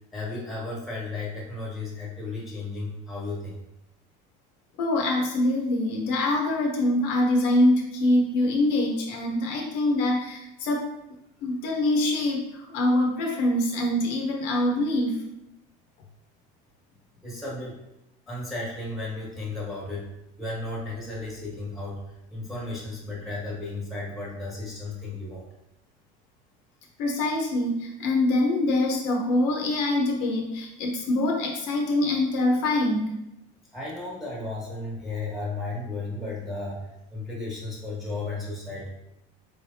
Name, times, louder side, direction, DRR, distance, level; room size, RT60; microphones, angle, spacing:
voice 1, 0.1-3.6 17.2-17.8 18.3-20.1 20.4-22.0 22.3-25.4 33.7-38.9, left 2 dB, ahead, -6 dB, 1.4 m, -34 dB
voice 2, 4.8-10.9 11.4-15.2 27.0-33.1, left 1 dB, 65° left, 1 dB, 0.8 m, -24 dB
4.5 x 3.2 x 2.7 m, 0.86 s
cardioid pair, 155°, 19 cm